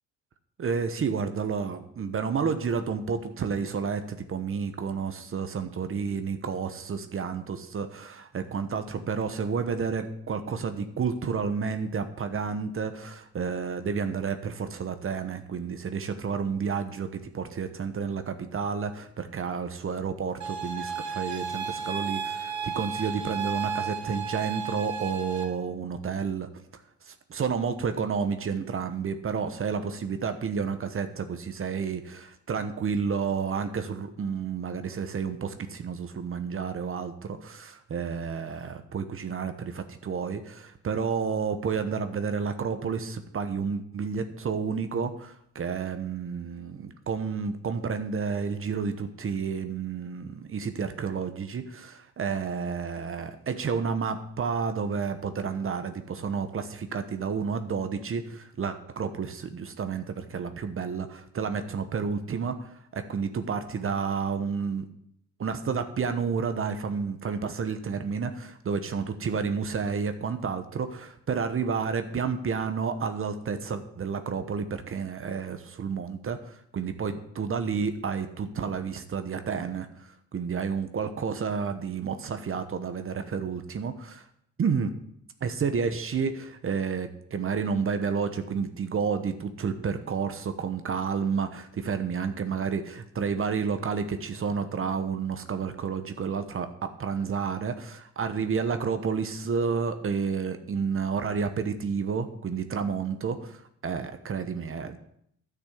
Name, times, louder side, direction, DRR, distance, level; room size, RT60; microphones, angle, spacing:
voice 1, 0.6-26.5 27.1-64.9 65.4-84.3 84.6-85.0 85.4-105.0, right 6 dB, 45° right, 9 dB, 1.1 m, -30 dB
sound 1, 20.4-25.4, right 6 dB, 70° right, 1.8 m, -33 dB
10.5 x 6.2 x 8.4 m, 0.71 s
cardioid pair, 90°, 30 cm